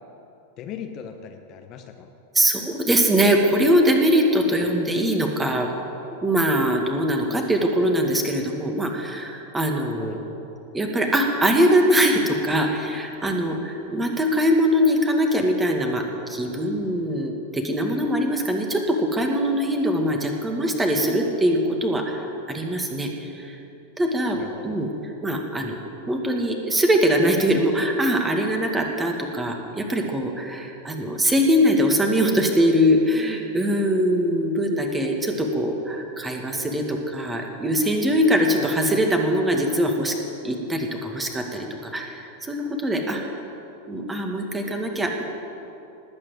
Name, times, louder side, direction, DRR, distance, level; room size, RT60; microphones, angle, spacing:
voice 1, 0.6-2.1 4.6-4.7 10.0-10.2 24.3-24.8 38.5-39.0, left 8 dB, 35° left, 5 dB, 1.1 m, -39 dB
voice 2, 2.3-5.7 6.2-10.2 10.7-16.0 16.3-22.2 22.5-23.5 24.0-24.9 25.2-25.8 26.1-40.2 40.4-43.2 43.9-45.2, equal, 10° right, 2 dB, 2.1 m, -22 dB
19.5 x 8.7 x 8.0 m, 2.9 s
figure-of-eight pair, 90°, 0 cm